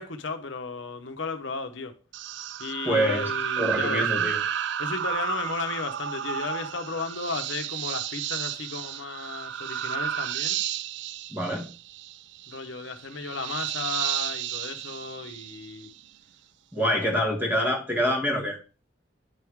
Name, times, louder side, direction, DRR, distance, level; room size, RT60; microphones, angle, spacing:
voice 1, 0.0-2.0 2.6-4.1 4.8-10.6 12.5-15.9 16.8-17.0, left 4 dB, 70° left, 0.9 m, -34 dB
sound 1, 2.1-16.0, right 10 dB, 60° right, 0.4 m, -32 dB
voice 2, 2.8-3.3 3.6-4.4 11.3-11.7 16.7-18.6, equal, 10° right, 1.6 m, -25 dB
9.6 x 3.6 x 4.6 m
head